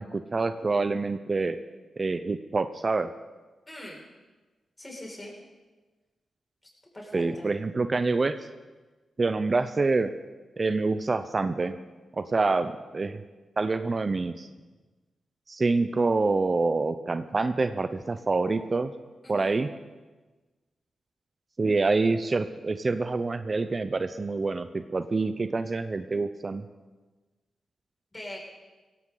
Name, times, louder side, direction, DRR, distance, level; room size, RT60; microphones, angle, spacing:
voice 1, 0.0-1.6 2.0-3.1 7.1-8.4 9.2-10.1 10.6-11.7 12.1-13.2 13.6-14.5 15.5-18.9 19.3-19.7 21.6-26.6, right 3 dB, 40° right, 11 dB, 0.7 m, -26 dB
voice 2, 3.7-4.0 4.8-5.3 6.9-7.5 19.2-19.6 28.1-28.4, left 1 dB, 25° left, -2 dB, 5.9 m, -41 dB
16.5 x 16.0 x 4.0 m, 1.2 s
cardioid pair, 50°, 0 cm